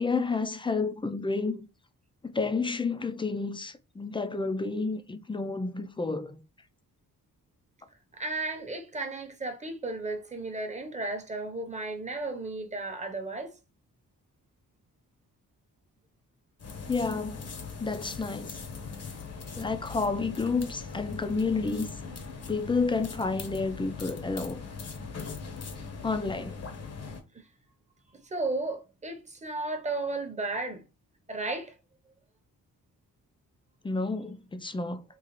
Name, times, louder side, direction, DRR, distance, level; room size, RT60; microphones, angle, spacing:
voice 1, 0.0-1.7 2.2-6.4 16.9-17.4 17.8-18.6 19.5-21.9 22.5-24.6 26.0-26.6 33.8-35.0, left 4 dB, 15° left, 0.3 m, -30 dB
voice 2, 8.2-13.5 28.2-30.8 31.3-31.7, right 2 dB, 20° right, 0.8 m, -34 dB
sound 1, 16.6-27.2, left 5 dB, 45° left, 0.7 m, -40 dB
3.8 x 2.4 x 3.0 m
cardioid pair, 110°, 36 cm